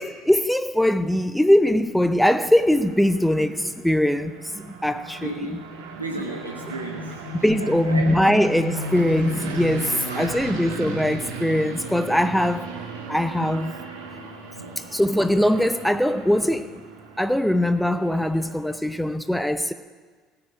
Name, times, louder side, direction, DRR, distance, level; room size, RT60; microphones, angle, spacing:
voice 1, 0.0-5.6 7.4-12.7 13.1-13.7 14.9-16.7 17.2-19.7, left 1 dB, 5° left, 11 dB, 0.6 m, -21 dB
sound 1, 1.7-18.9, right 3 dB, 65° right, 1.6 m, -37 dB
voice 2, 5.2-7.3 7.6-8.4 9.8-10.4 13.4-13.5 14.5-14.8 16.1-16.2, right 2 dB, 85° right, 0 dB, 1.1 m, -35 dB
17.0 x 5.9 x 8.8 m, 1.5 s
figure-of-eight pair, 60°, 0 cm